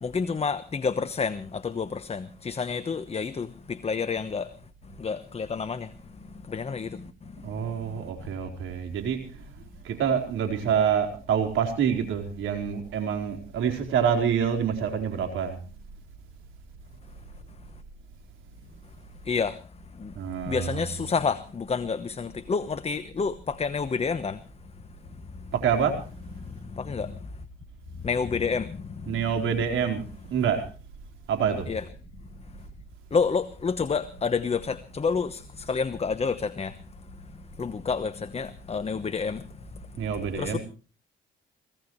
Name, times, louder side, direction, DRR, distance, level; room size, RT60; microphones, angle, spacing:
voice 1, 0.0-4.5 5.0-5.9 6.4-7.5 19.2-19.6 20.0-20.1 20.5-24.4 25.4-25.5 26.4-27.2 28.0-29.3 31.7-31.8 33.1-36.8 37.6-39.5 40.4-40.6, left 5 dB, 30° left, 1.1 m, -29 dB
voice 2, 7.4-9.4 9.8-15.6 20.1-20.9 25.5-25.9 29.0-30.0 30.3-30.6 31.3-31.7 40.0-40.6, right 7 dB, 85° right, 4.4 m, -26 dB
24.5 x 17.5 x 3.2 m
cardioid pair, 90°, 20 cm